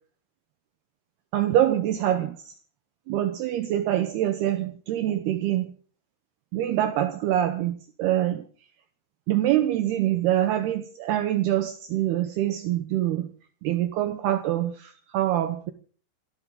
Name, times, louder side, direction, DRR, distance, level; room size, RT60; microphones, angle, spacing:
voice 1, 1.3-2.5 3.1-5.7 6.5-8.4 9.3-13.3 13.6-15.7, right 12 dB, 75° right, 9 dB, 2.5 m, -25 dB
27.5 x 12.0 x 3.8 m, 0.43 s
omnidirectional pair, 5.4 m